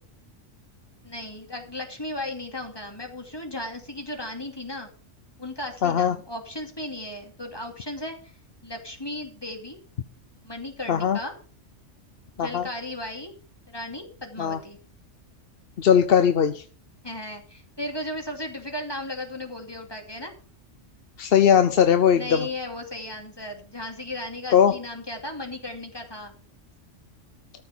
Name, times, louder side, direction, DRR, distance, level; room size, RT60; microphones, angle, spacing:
voice 1, 1.0-4.9 5.4-8.3 8.6-9.8 10.4-11.3 12.4-13.3 13.7-14.8 17.0-20.3 22.1-26.3, left 1 dB, 20° left, 2 dB, 2.5 m, -35 dB
voice 2, 5.8-6.2 10.9-11.2 12.4-12.6 14.4-14.6 15.8-16.6 21.2-22.5 24.5-24.7, left 8 dB, 55° left, 8 dB, 0.9 m, -19 dB
14.0 x 6.2 x 6.9 m, 0.41 s
omnidirectional pair, 1.3 m